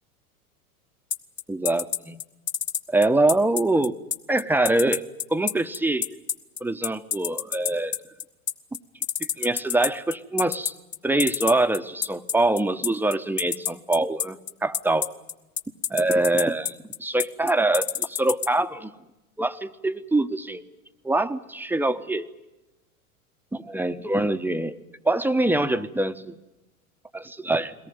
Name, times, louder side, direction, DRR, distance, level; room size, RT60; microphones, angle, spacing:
sound 1, 1.1-18.5, left 8 dB, 25° left, 1.2 m, -27 dB
voice 1, 1.5-2.2 2.9-3.9 4.3-5.0 5.3-6.1 6.6-8.0 9.2-10.7 11.0-15.1 15.9-18.9 19.4-20.6 21.0-22.3 23.5-24.8 25.0-26.3 27.1-27.7, right 2 dB, 5° right, 10 dB, 0.9 m, -24 dB
22.5 x 18.0 x 9.4 m, 1.0 s
hypercardioid pair, 95°, 45 cm